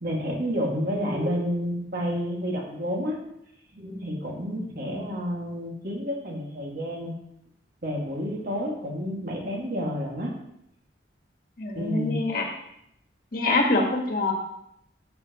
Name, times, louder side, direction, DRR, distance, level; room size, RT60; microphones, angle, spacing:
voice 1, 0.0-3.2 3.7-7.1 7.8-10.3 11.8-12.2, equal, 50° right, -1 dB, 2.0 m, -30 dB
voice 2, 11.6-12.5 13.3-14.3, left 2 dB, 50° left, 1 dB, 1.5 m, -24 dB
12.5 x 7.3 x 3.0 m, 0.77 s
head